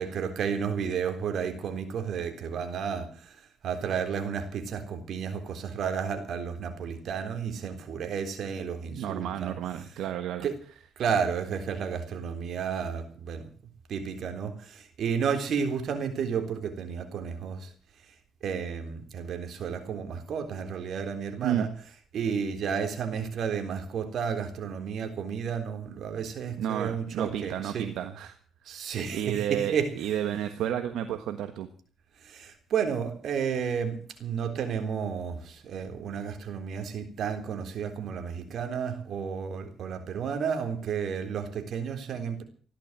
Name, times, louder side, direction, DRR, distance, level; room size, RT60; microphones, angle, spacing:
voice 1, 0.0-9.6 10.4-10.6 11.0-13.5 13.9-17.7 18.4-21.7 22.1-27.9 28.7-29.9 32.2-42.4, right 7 dB, 65° right, 3.7 m, -32 dB
voice 2, 8.9-10.5 21.4-21.7 26.6-28.4 28.6-31.7, right 10 dB, 85° right, 1.4 m, -32 dB
15.5 x 12.0 x 7.4 m
cardioid pair, 90°, 0 cm